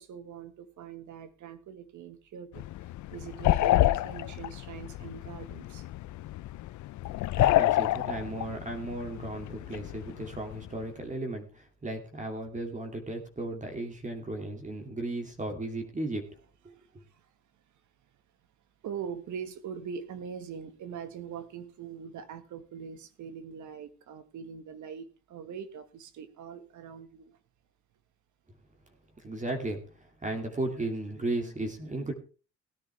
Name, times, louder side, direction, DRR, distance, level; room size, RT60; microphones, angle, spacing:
voice 1, 0.0-5.9 16.7-17.2 18.8-27.4, right 7 dB, 75° right, 11 dB, 1.6 m, -42 dB
sound 1, 2.5-10.8, left 15 dB, 70° left, 0.6 m, -29 dB
voice 2, 7.4-16.3 29.2-32.1, right 2 dB, 25° right, 3 dB, 2.4 m, -35 dB
17.5 x 10.0 x 3.4 m, 0.35 s
cardioid pair, 90°, 30 cm